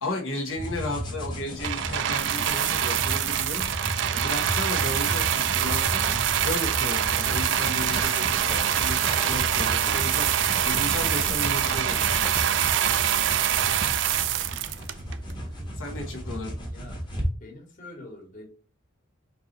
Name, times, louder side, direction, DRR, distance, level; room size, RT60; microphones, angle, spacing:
voice 1, 0.0-3.8 4.1-6.0 6.4-10.3 10.6-12.0 15.7-16.5, left 2 dB, 75° left, -2 dB, 1.2 m, -34 dB
sound 1, 0.6-17.3, equal, 20° left, 1.2 m, -34 dB
sound 2, 1.6-15.3 16.1-16.2, right 10 dB, 60° right, 0.4 m, -25 dB
sound 3, 7.0-12.4, equal, ahead, 0.4 m, -38 dB
voice 2, 13.5-14.3 15.2-15.7 16.7-17.0 17.4-18.5, left 2 dB, 40° left, 0 dB, 1.6 m, -47 dB
4.6 x 2.9 x 4.0 m, 0.35 s
head